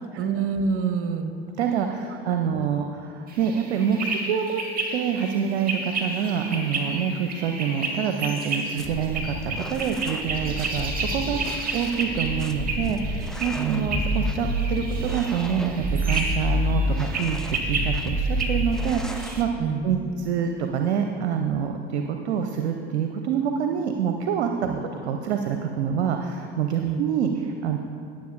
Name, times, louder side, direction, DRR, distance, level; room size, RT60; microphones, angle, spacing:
voice 1, 0.0-1.3 13.5-13.9 19.6-19.8 24.7-24.8 26.8-27.0, right 6 dB, 40° right, 6 dB, 1.1 m, -27 dB
voice 2, 1.6-4.6 4.9-19.5 19.8-24.7 25.0-27.8, right 7 dB, 75° right, 5 dB, 0.6 m, -26 dB
sound 1, 3.3-19.4, right 3 dB, 25° right, 1.9 m, -32 dB
sound 2, 8.8-19.4, equal, ahead, 0.6 m, -29 dB
19.5 x 7.4 x 2.6 m, 2.5 s
figure-of-eight pair, 70°, 33 cm